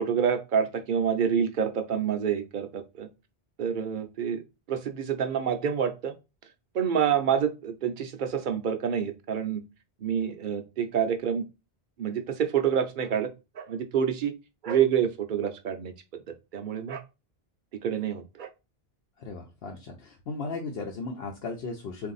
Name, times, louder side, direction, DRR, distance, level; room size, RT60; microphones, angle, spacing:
voice 1, 0.0-3.1 3.6-4.4 4.7-6.1 6.7-9.6 10.0-11.4 12.0-13.3 13.6-14.3 14.6-15.9 16.5-17.0 17.7-18.5, right 8 dB, 55° right, 7 dB, 0.7 m, -27 dB
voice 2, 19.2-22.1, left 3 dB, 80° left, 0 dB, 0.9 m, -36 dB
3.8 x 2.6 x 3.9 m, 0.27 s
omnidirectional pair, 1.0 m